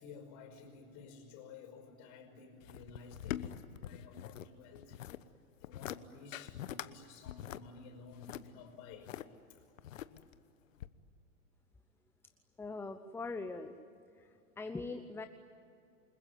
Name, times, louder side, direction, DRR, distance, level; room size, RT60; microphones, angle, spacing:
voice 1, 0.0-5.0 5.6-9.1 9.5-9.8, left 4 dB, 45° left, 6 dB, 5.4 m, -53 dB
sound 1, 2.6-4.5 4.7-5.2 5.6-6.0 6.3-6.9 7.2-9.2 9.8-10.4 10.8-10.9, left 12 dB, 65° left, 1.2 m, -43 dB
voice 2, 12.6-13.8 14.1-15.3, left 3 dB, 5° left, 8 dB, 0.8 m, -42 dB
28.5 x 21.0 x 9.9 m, 2.6 s
hypercardioid pair, 105°, 42 cm